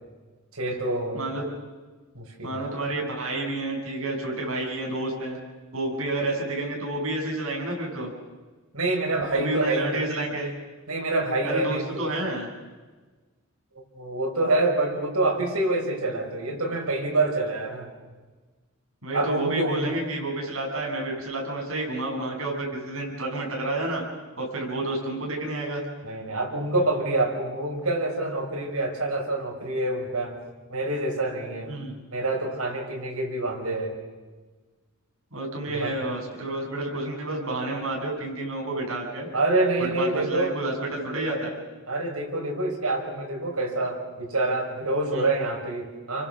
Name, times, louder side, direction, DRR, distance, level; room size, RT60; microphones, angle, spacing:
voice 1, 0.5-1.3 2.1-2.7 8.7-10.2 10.9-12.1 13.9-17.9 19.1-19.9 26.0-30.4 30.7-31.7 32.1-33.9 35.7-35.9 39.3-40.6 41.9-46.3, right 2 dB, 85° right, 0 dB, 6.1 m, -26 dB
voice 2, 2.4-5.4 5.7-8.1 9.3-10.5 11.4-12.5 19.0-24.0 24.4-25.8 31.7-31.9 35.3-39.3 39.8-41.6 45.1-45.3, right 2 dB, 65° right, 0 dB, 7.4 m, -30 dB
29.0 x 24.5 x 6.3 m, 1.3 s
head